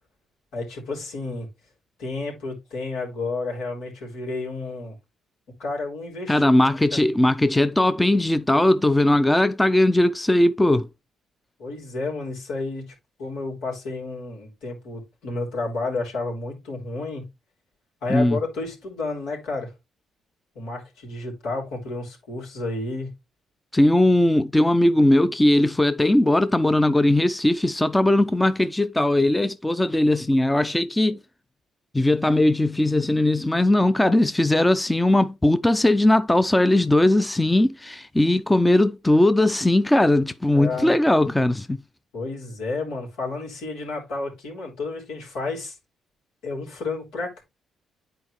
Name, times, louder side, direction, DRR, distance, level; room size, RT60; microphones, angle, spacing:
voice 1, 0.5-1.5 2.0-4.9 5.6-7.0 11.6-17.3 18.0-19.7 20.5-23.1 40.5-40.9 42.1-45.8 46.4-47.4, left 3 dB, 90° left, 3.3 m, -31 dB
voice 2, 6.3-10.9 18.1-18.4 23.7-31.2 31.9-41.8, left 1 dB, 10° left, 0.5 m, -19 dB
9.5 x 4.4 x 3.1 m
cardioid pair, 90°, 0 cm